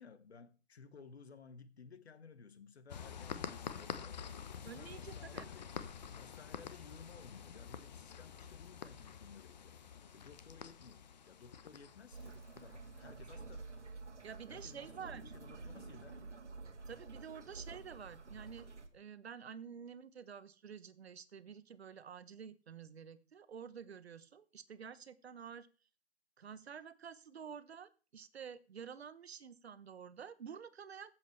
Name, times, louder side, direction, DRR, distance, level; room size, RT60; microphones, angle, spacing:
voice 1, 0.0-4.3 4.6-5.7 6.2-9.8 10.1-13.7 14.5-16.4, left 5 dB, 65° left, 1.5 m, -57 dB
sound 1, 2.9-14.1, left 7 dB, 40° left, 0.9 m, -48 dB
voice 2, 4.6-5.5 14.2-15.3 16.9-25.7 26.4-31.1, right 7 dB, 65° right, 1.0 m, -50 dB
sound 2, 12.1-18.9, right 3 dB, 90° right, 1.8 m, -50 dB
14.5 x 7.6 x 3.3 m
hypercardioid pair, 155°, 35 cm